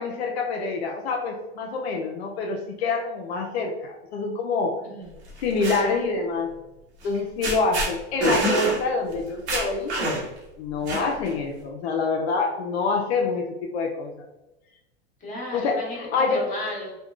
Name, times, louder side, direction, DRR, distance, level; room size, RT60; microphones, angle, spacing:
voice 1, 0.0-4.8 5.4-6.5 7.0-9.9 10.6-14.1 15.5-16.5, left 4 dB, 80° left, 1 dB, 0.5 m, -26 dB
sound 1, 5.3-5.8 7.0-7.2 7.4-7.9 8.2-8.8 9.1-9.2 9.5-10.4 10.9-11.3, right 1 dB, 85° right, 1.2 m, -25 dB
voice 2, 15.2-16.9, left 1 dB, 25° left, -4 dB, 1.3 m, -34 dB
3.5 x 2.2 x 2.3 m, 0.97 s
hypercardioid pair, 110°, 32 cm